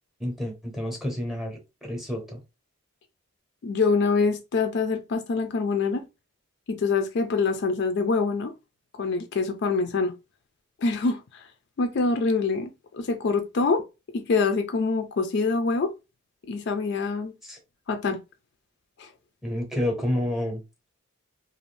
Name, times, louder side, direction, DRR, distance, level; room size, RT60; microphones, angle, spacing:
voice 1, 0.2-2.4 17.4-17.6 19.4-20.6, left 1 dB, ahead, 0.8 m, -29 dB
voice 2, 3.6-6.0 6.7-8.5 9.0-10.1 10.8-11.5 11.8-13.8 14.1-15.9 16.4-17.3 17.9-18.2 19.0-19.1, left 4 dB, 50° left, 0.4 m, -25 dB
2.6 x 2.4 x 3.2 m
head